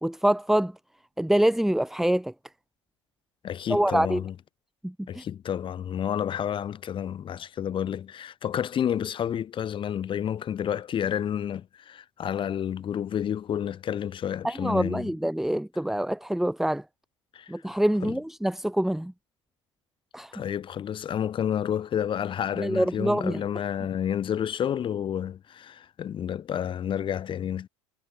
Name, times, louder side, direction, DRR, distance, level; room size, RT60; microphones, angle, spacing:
voice 1, 0.0-0.7 1.2-2.3 3.7-4.2 4.8-5.2 14.4-16.8 17.5-19.1 20.1-20.3 22.5-23.4, right 1 dB, ahead, 1.5 m, -25 dB
voice 2, 3.4-4.3 5.1-15.1 17.3-17.5 18.0-18.2 20.3-27.7, left 9 dB, 35° left, 1.8 m, -30 dB
hypercardioid pair, 85°, 16 cm